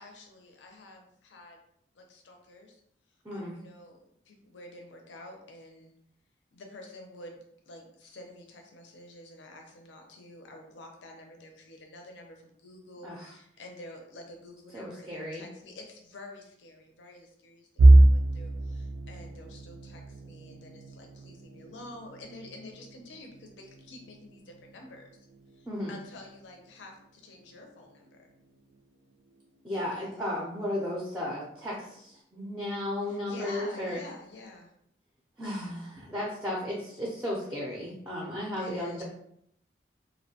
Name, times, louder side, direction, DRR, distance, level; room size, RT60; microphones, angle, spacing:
voice 1, 0.0-1.6 1.9-2.8 3.3-5.9 6.5-25.3 25.5-28.3 29.9-30.4 33.0-34.7 38.5-39.0, left 2 dB, 90° left, 2 dB, 0.5 m, -48 dB
voice 2, 13.0-13.3 14.7-15.5 25.7-25.9 29.6-34.0 35.4-39.0, left 1 dB, 10° right, -4 dB, 0.4 m, -34 dB
sound 1, 17.8-29.6 30.0-30.3 30.7-30.9 31.7-32.2, right 2 dB, 85° right, 0.3 m, -27 dB
2.5 x 2.1 x 2.7 m, 0.71 s
head